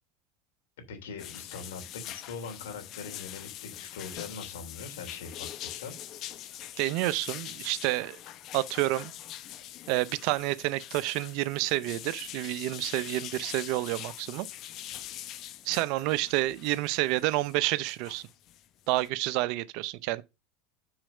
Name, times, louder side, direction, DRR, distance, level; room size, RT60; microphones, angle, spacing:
voice 1, 0.9-5.9, left 5 dB, 80° left, 3.0 m, -42 dB
sound 1, 1.2-19.1, left 12 dB, 50° left, 0.9 m, -43 dB
voice 2, 6.8-8.2 8.5-9.1 9.9-14.5 15.6-18.3 18.9-20.2, right 18 dB, 60° right, 0.7 m, -29 dB
8.9 x 4.8 x 5.4 m
hypercardioid pair, 85°, 0 cm